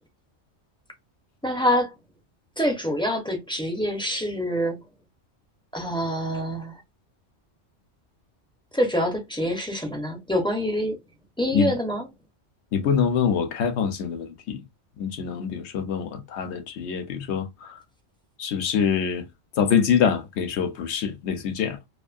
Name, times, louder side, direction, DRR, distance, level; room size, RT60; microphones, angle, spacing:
voice 1, 1.4-1.9 2.6-4.8 5.7-6.7 8.7-11.0 11.4-12.1, equal, 5° left, 0.5 m, -25 dB
voice 2, 12.7-14.6 15.0-17.5 18.4-19.2 19.6-21.8, left 7 dB, 70° left, 0.9 m, -24 dB
2.6 x 2.4 x 2.4 m
omnidirectional pair, 1.2 m